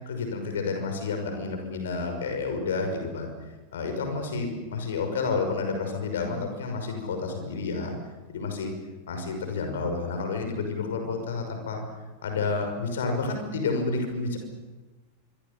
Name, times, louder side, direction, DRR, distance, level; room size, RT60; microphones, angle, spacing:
voice 1, 0.1-3.3 3.7-7.9 8.3-8.7 9.1-11.8 12.2-14.4, left 4 dB, 60° left, 5 dB, 6.0 m, -30 dB
27.0 x 24.5 x 7.0 m, 1.2 s
figure-of-eight pair, 90°, 0 cm